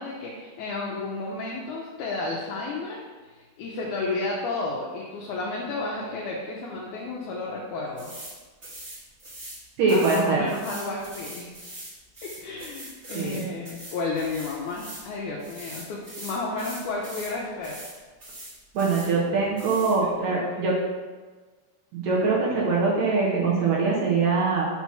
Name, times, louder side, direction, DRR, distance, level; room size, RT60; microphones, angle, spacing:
voice 1, 0.0-8.1 9.9-11.5 12.2-17.8 19.7-20.7, left 3 dB, 80° left, -3 dB, 1.8 m, -32 dB
sound 1, 8.0-8.3 8.6-9.6 9.9-15.1 15.4-17.3 17.6-17.9 18.2-19.1 19.6-20.0, right 1 dB, 35° right, 1.1 m, -41 dB
voice 2, 9.8-10.4 13.1-13.5 18.7-20.8 21.9-24.7, right 4 dB, 75° right, -4 dB, 2.4 m, -23 dB
6.1 x 2.9 x 5.7 m, 1.4 s
omnidirectional pair, 4.1 m